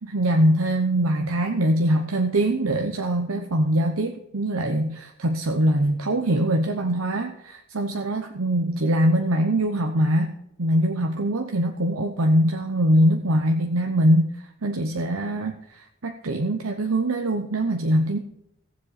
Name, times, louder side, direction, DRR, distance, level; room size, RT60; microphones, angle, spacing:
voice 1, 0.0-14.3 14.6-18.2, right 1 dB, 75° right, 4 dB, 0.9 m, -23 dB
18.0 x 7.4 x 4.3 m, 0.82 s
head